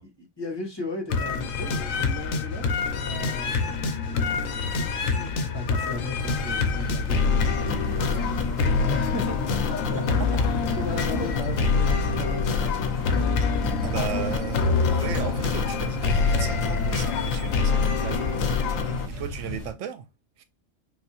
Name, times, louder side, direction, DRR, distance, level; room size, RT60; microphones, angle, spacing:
voice 1, 0.4-10.1 10.8-13.1, left 2 dB, 20° left, 1.1 m, -36 dB
sound 1, 1.1-19.1, left 5 dB, 85° left, 1.0 m, -25 dB
sound 2, 6.2-19.7, right 1 dB, 25° right, 1.2 m, -35 dB
voice 2, 13.8-20.1 20.4-20.5, right 9 dB, 75° right, 0.9 m, -36 dB
3.9 x 2.6 x 2.7 m
omnidirectional pair, 1.3 m